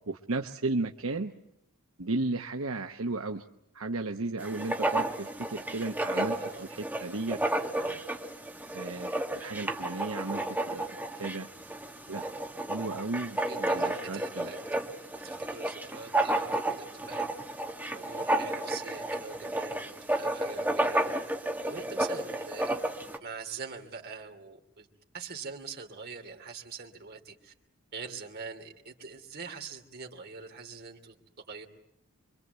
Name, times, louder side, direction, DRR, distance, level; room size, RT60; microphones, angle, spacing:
voice 1, 0.1-1.3 2.0-3.4 3.7-7.4 7.8-8.0 8.7-9.1 9.3-11.5 12.1-12.2 12.7-14.5, right 2 dB, 75° right, 4 dB, 1.0 m, -34 dB
Writing, 4.4-23.2, right 1 dB, 10° right, 1.7 m, -32 dB
voice 2, 6.1-6.7 13.5-14.8 15.1-17.3 17.9-21.2 21.7-22.8 23.2-24.9 25.1-27.5 27.9-31.7, right 5 dB, 50° right, 3 dB, 2.8 m, -43 dB
25.5 x 24.0 x 8.1 m, 0.77 s
head